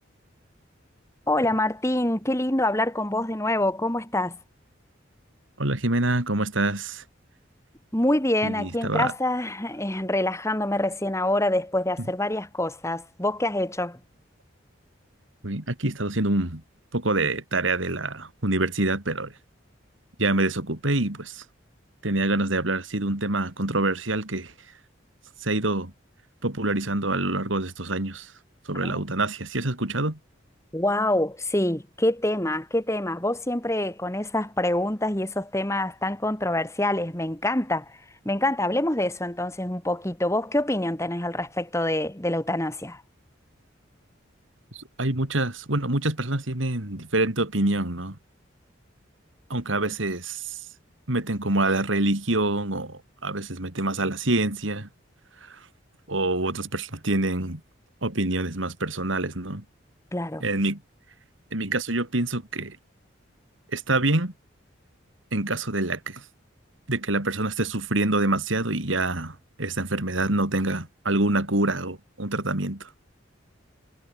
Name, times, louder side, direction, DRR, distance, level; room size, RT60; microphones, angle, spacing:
voice 1, 1.3-4.4 7.9-14.0 28.8-29.0 30.7-43.0 60.1-60.4, left 1 dB, 15° left, 2.4 m, -26 dB
voice 2, 5.6-7.0 8.4-9.1 15.4-16.6 16.9-19.3 20.2-21.4 22.0-24.5 25.4-25.9 26.4-28.3 28.7-30.2 44.7-48.2 49.5-50.6 51.1-54.9 55.4-55.6 56.1-57.6 58.0-59.6 60.4-60.8 61.5-62.8 63.7-64.3 65.3-66.2 66.9-72.9, right 2 dB, 80° right, 3.3 m, -26 dB
head